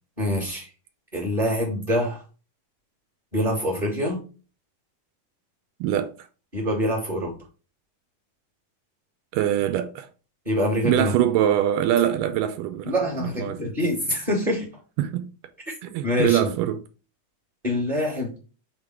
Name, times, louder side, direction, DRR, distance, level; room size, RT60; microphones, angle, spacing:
voice 1, 0.2-0.7 1.1-2.2 3.3-4.2 6.5-7.3 10.4-11.1 12.8-14.7 16.0-16.5 17.6-18.4, left 1 dB, 20° right, 1.4 m, -25 dB
voice 2, 5.8-6.1 9.3-10.1 10.8-12.9 13.2-13.6 15.0-15.3 15.8-16.8, right 11 dB, 85° right, 2.1 m, -23 dB
5.9 x 3.7 x 4.6 m
omnidirectional pair, 3.8 m